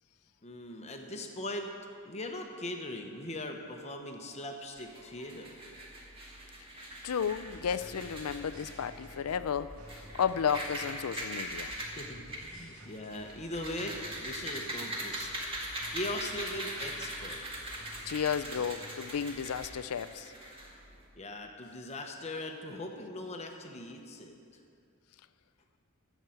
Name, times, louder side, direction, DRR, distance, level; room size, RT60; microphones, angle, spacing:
voice 1, 0.4-1.7 2.0-5.6 12.0-17.4 21.2-24.4, left 1 dB, 30° left, 3 dB, 0.9 m, -40 dB
sound 1, 4.8-21.0, right 1 dB, 25° right, 1.9 m, -41 dB
voice 2, 7.0-9.8 10.1-11.7 18.1-20.3, left 7 dB, 85° left, 14 dB, 0.4 m, -33 dB
sound 2, 7.2-19.8, equal, 85° right, 2.1 m, -53 dB
12.5 x 7.1 x 7.7 m, 2.4 s
head